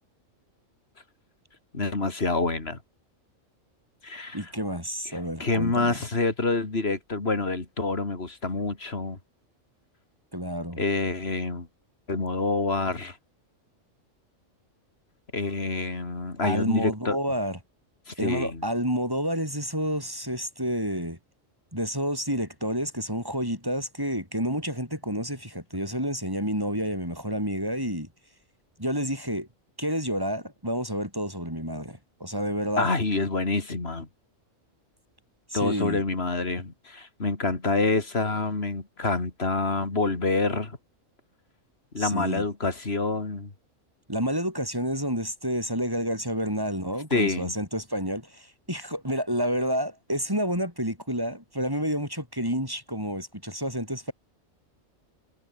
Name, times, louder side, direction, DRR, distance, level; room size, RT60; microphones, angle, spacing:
voice 1, 1.7-2.8 4.0-4.4 5.1-9.2 10.8-11.7 12.1-13.2 15.3-17.2 18.1-18.6 32.8-34.1 35.5-40.8 41.9-43.5 47.1-47.5, left 3 dB, 50° left, 3.3 m, -27 dB
voice 2, 4.3-6.0 10.3-10.8 16.4-17.6 18.2-21.2 21.7-28.1 28.8-29.5 29.8-32.9 35.5-36.0 42.0-42.4 44.1-54.1, equal, 15° right, 7.5 m, -29 dB
omnidirectional pair, 1.4 m